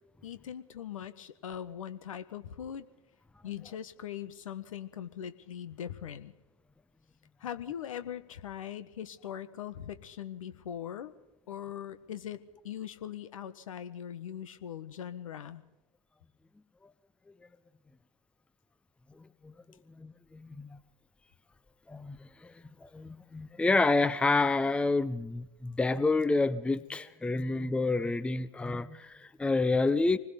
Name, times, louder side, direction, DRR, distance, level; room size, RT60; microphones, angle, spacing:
voice 1, 0.2-2.9 3.4-6.3 7.4-11.1 11.5-15.6, left 9 dB, 70° left, 1.5 m, -41 dB
voice 2, 20.0-20.8 21.9-22.2 22.4-22.5 22.8-30.2, left 3 dB, 5° left, 0.7 m, -28 dB
26.0 x 20.5 x 5.3 m
figure-of-eight pair, 90°, 18 cm